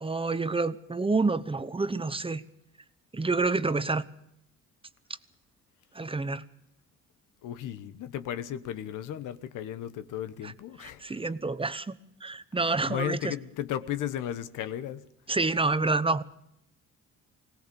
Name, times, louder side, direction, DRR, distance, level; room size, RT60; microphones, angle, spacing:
voice 1, 0.0-2.4 3.1-4.0 5.9-6.4 10.4-10.5 11.0-13.3 15.3-16.2, right 3 dB, 20° right, 14 dB, 0.9 m, -28 dB
voice 2, 7.4-11.1 12.6-15.1, left 11 dB, 85° left, 12 dB, 1.2 m, -35 dB
21.0 x 18.0 x 7.0 m, 0.78 s
cardioid pair, 90°, 30 cm